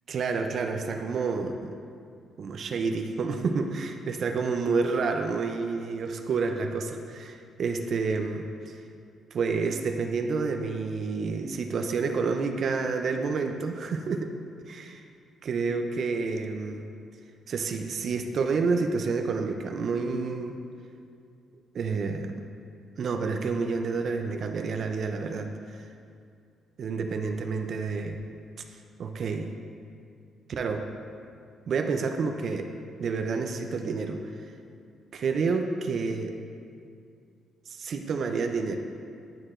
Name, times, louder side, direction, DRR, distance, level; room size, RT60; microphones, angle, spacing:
voice 1, 0.1-1.8 2.4-8.8 9.3-14.3 14.7-15.0 15.4-16.9 17.5-20.5 21.7-22.4 23.0-25.9 26.8-28.2 29.0-29.5 30.5-30.8 31.7-32.7 33.0-34.2 35.1-36.3 37.7-38.8, right 4 dB, 55° right, 5 dB, 0.4 m, -29 dB
10.5 x 4.6 x 2.5 m, 2.3 s
cardioid pair, 90°, 0 cm